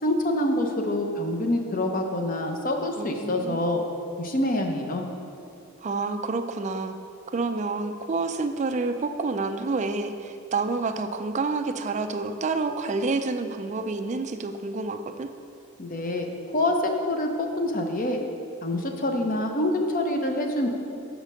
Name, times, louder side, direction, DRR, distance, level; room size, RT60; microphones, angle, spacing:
voice 1, 0.0-3.8 4.2-5.1 15.8-16.3 16.5-18.2 18.6-20.7, left 1 dB, 40° left, 4 dB, 0.7 m, -26 dB
voice 2, 3.0-3.8 5.8-7.0 7.3-15.3, right 3 dB, 35° right, 8 dB, 0.4 m, -29 dB
6.5 x 5.0 x 6.2 m, 2.7 s
head